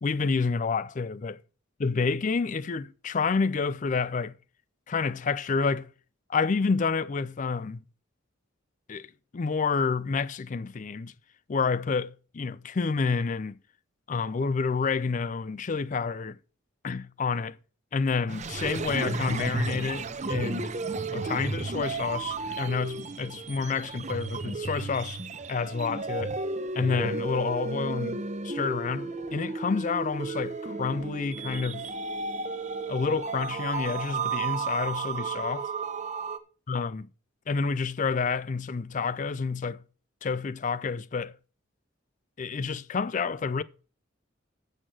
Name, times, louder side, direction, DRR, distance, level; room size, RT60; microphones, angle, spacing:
voice 1, 0.0-1.4 1.8-4.3 4.9-5.9 6.3-7.8 8.9-11.1 11.5-13.6 14.1-16.4 16.8-17.6 17.9-20.7 21.1-25.2 25.5-26.3 26.7-31.9 32.9-35.7 36.7-37.1 37.5-39.8 40.2-41.4 42.4-43.6, left 5 dB, 35° left, 0.4 m, -29 dB
sound 1, 18.3-36.4, right 3 dB, 35° right, 0.7 m, -33 dB
7.5 x 6.5 x 7.8 m
head